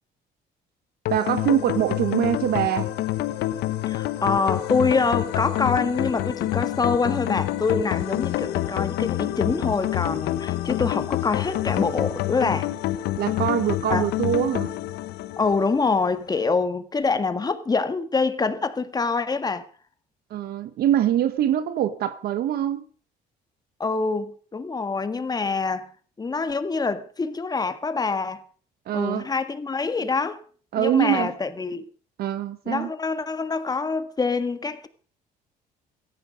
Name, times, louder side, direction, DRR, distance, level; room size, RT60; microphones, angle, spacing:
sound 1, 1.0-16.1, left 15 dB, 80° left, 1.1 m, -27 dB
voice 1, 1.1-2.9 13.2-14.7 20.3-22.8 28.9-29.2 30.7-31.3 32.2-32.9, right 11 dB, 65° right, 1.0 m, -23 dB
voice 2, 3.9-12.7 13.9-14.0 15.4-19.7 23.8-25.9 26.2-28.4 28.9-30.4 30.7-31.8 32.6-34.9, left 4 dB, 25° left, 1.6 m, -25 dB
17.0 x 14.0 x 5.2 m
cardioid pair, 110°, 17 cm